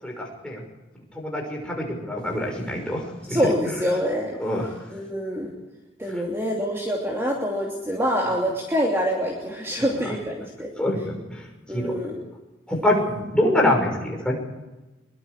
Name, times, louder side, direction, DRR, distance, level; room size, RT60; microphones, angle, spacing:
voice 1, 0.0-0.6 1.1-3.4 4.4-4.7 10.8-11.4 11.7-11.9 12.7-14.4, left 1 dB, 5° left, -1 dB, 5.7 m, -25 dB
voice 2, 3.3-4.4 4.9-5.5 6.0-10.7 11.7-12.3, equal, 15° right, -2 dB, 2.8 m, -25 dB
23.5 x 23.0 x 5.0 m, 1.1 s
head